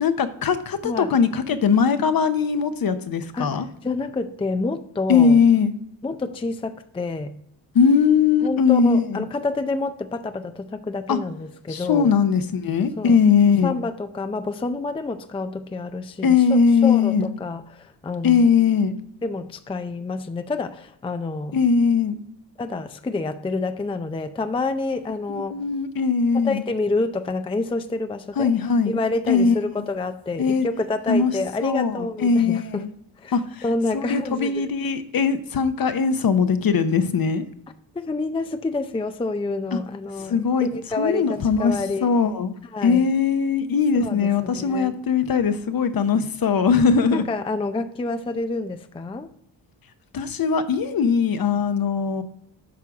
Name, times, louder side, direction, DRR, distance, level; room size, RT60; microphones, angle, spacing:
voice 1, 0.0-3.7 5.1-5.7 7.7-9.2 11.1-11.2 11.7-13.7 16.2-17.3 18.2-18.9 21.5-22.2 25.3-26.6 28.4-29.0 29.3-29.5 30.4-30.7 31.1-31.3 31.6-32.9 33.3-33.6 33.9-37.5 39.7-39.8 40.3-40.7 41.0-42.5 42.8-47.2 50.1-52.2, left 6 dB, 50° left, 10 dB, 0.9 m, -20 dB
voice 2, 3.3-5.4 6.0-7.4 8.4-12.1 13.0-13.2 13.6-18.5 19.2-21.6 22.6-25.6 26.3-28.5 28.9-32.8 33.2-33.4 33.6-34.7 37.9-42.1 42.7-43.1 44.0-45.0 47.1-49.3, left 3 dB, 10° left, 9 dB, 0.5 m, -28 dB
8.6 x 5.6 x 4.9 m, 0.73 s
cardioid pair, 85°, 46 cm